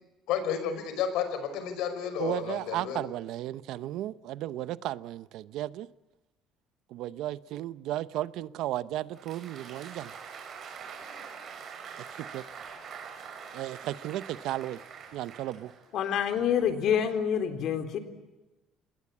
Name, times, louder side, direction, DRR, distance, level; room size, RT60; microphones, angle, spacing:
voice 1, 0.3-3.0, left 8 dB, 80° left, 9 dB, 5.3 m, -31 dB
voice 2, 2.2-5.9 6.9-10.1 12.1-12.4 13.5-14.8 15.1-15.7, right 14 dB, 70° right, 17 dB, 0.8 m, -34 dB
Applause, 9.0-16.1, right 6 dB, 40° right, 5.4 m, -44 dB
voice 3, 15.9-18.0, left 8 dB, 55° left, 8 dB, 3.6 m, -27 dB
26.5 x 21.0 x 8.6 m, 1.1 s
cardioid pair, 160°, 0 cm